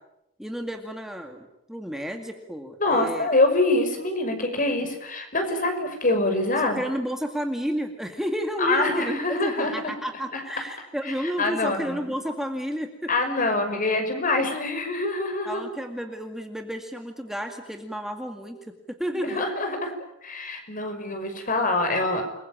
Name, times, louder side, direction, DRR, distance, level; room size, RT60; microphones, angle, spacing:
voice 1, 0.4-3.3 6.5-13.1 15.4-19.5, equal, ahead, 4 dB, 2.2 m, -31 dB
voice 2, 2.8-6.8 8.6-9.9 11.0-12.1 13.1-15.6 19.2-19.9 20.2-22.2, left 2 dB, 45° left, 6 dB, 6.0 m, -25 dB
29.0 x 22.0 x 8.9 m, 0.85 s
head